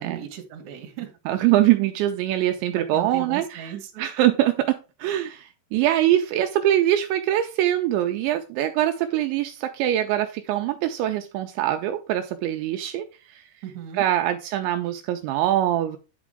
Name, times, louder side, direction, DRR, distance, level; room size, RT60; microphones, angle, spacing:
voice 1, 0.0-1.1 2.8-4.0 13.6-14.1, right 9 dB, 55° right, 4 dB, 2.3 m, -37 dB
voice 2, 1.3-3.7 4.0-13.4 13.9-16.0, right 13 dB, 80° right, 6 dB, 2.8 m, -23 dB
9.7 x 6.1 x 3.6 m, 0.30 s
omnidirectional pair, 5.4 m